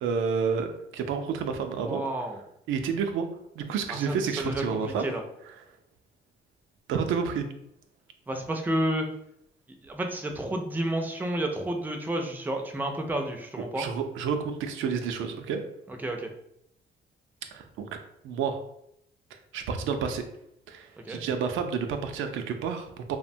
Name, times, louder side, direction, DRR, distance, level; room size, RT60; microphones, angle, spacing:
voice 1, 0.0-2.0 2.7-3.3 3.6-5.1 5.5-5.6 6.9-7.5 13.7-15.6 17.5-17.9 18.2-18.6 19.3-20.2 20.7-23.2, right 6 dB, 80° right, 6 dB, 0.4 m, -30 dB
voice 2, 1.8-2.4 3.9-5.2 8.3-9.1 9.8-13.9 15.9-16.3 21.0-21.2, right 1 dB, 10° right, 4 dB, 0.4 m, -31 dB
2.7 x 2.1 x 2.6 m, 0.75 s
cardioid pair, 90°, 20 cm